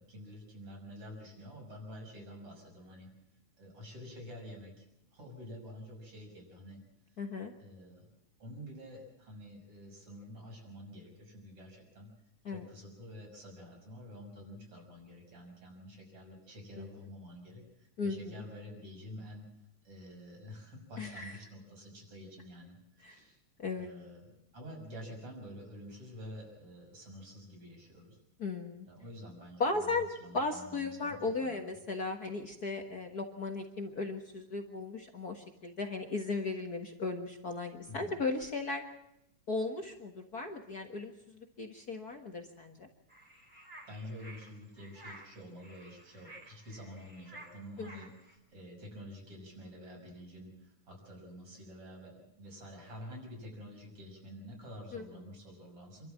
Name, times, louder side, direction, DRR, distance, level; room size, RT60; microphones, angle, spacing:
voice 1, 0.0-3.1 3.6-4.9 5.1-6.8 7.6-8.1 8.4-12.1 12.5-19.5 19.8-23.4 23.8-28.2 28.8-31.7 37.9-38.2 43.9-56.1, equal, 40° right, 1 dB, 7.0 m, -49 dB
voice 2, 7.2-7.5 12.4-12.7 16.8-16.9 18.0-18.4 21.0-21.3 23.0-23.2 23.6-23.9 28.4-28.9 29.6-30.1 30.3-38.8 39.5-42.9 47.8-48.0 54.9-55.0, left 3 dB, 45° left, 4 dB, 1.3 m, -36 dB
sound 1, 43.1-48.4, right 1 dB, 15° right, 3.3 m, -53 dB
28.0 x 13.0 x 7.5 m, 0.85 s
omnidirectional pair, 3.7 m